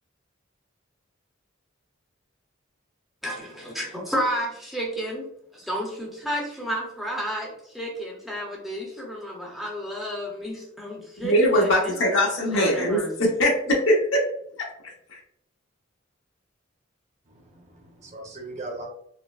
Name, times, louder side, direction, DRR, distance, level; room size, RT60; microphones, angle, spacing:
voice 1, 3.2-11.3 11.6-11.9 12.5-13.1, equal, ahead, -3 dB, 0.6 m, -31 dB
voice 2, 11.2-14.0 14.8-15.2, equal, 85° left, -2 dB, 0.9 m, -22 dB
voice 3, 17.2-18.9, right 2 dB, 35° right, 0 dB, 0.7 m, -39 dB
4.5 x 2.0 x 2.3 m, 0.70 s
head